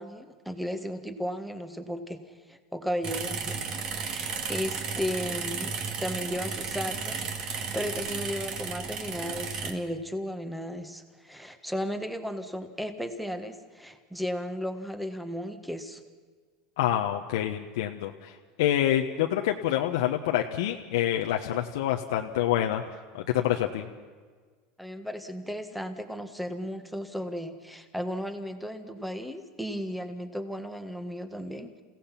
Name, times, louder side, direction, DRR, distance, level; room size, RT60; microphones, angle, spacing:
voice 1, 0.0-3.7 4.0-5.7 6.0-16.0 24.8-31.8, equal, ahead, 8 dB, 1.7 m, -35 dB
sound 1, 3.0-9.7, right 5 dB, 35° right, 2.4 m, -34 dB
voice 2, 16.8-22.8 23.1-23.9, left 12 dB, 90° left, 2 dB, 1.2 m, -27 dB
28.5 x 17.0 x 5.9 m, 1.5 s
supercardioid pair, 150°, 2 cm